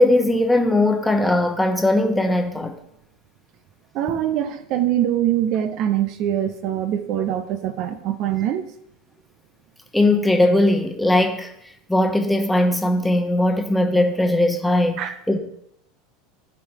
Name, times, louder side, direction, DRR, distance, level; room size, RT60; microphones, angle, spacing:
voice 1, 0.0-2.8 9.9-11.5 11.9-15.0 15.3-15.4, left 1 dB, 5° left, 1.1 m, -19 dB
voice 2, 3.9-8.7 15.0-15.1, right 11 dB, 50° right, 0.6 m, -23 dB
15.5 x 5.7 x 2.9 m
figure-of-eight pair, 80°, 0 cm